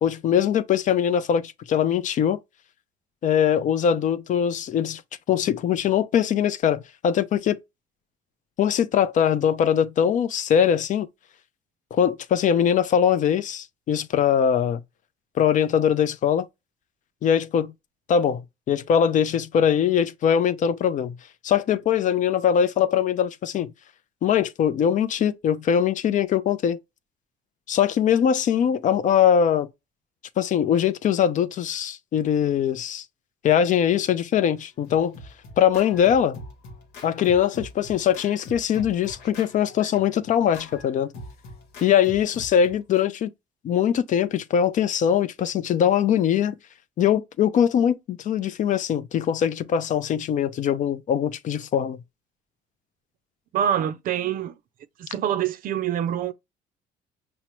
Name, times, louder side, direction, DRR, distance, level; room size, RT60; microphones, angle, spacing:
voice 1, 0.0-2.4 3.2-5.0 5.3-7.6 8.6-11.1 11.9-14.8 15.4-16.5 17.2-17.7 18.1-21.2 21.4-23.7 24.2-26.8 27.7-29.7 30.4-33.0 33.4-35.2 35.6-36.4 37.0-41.1 41.8-43.3 43.6-46.5 47.0-52.0, left 8 dB, 50° left, 0.4 m, -22 dB
Scratching (performance technique), 34.6-43.0, left 1 dB, 90° left, 0.9 m, -43 dB
voice 2, 53.5-54.5 55.0-56.3, right 10 dB, 55° right, 0.4 m, -25 dB
5.5 x 2.0 x 3.0 m
cardioid pair, 110°, 17 cm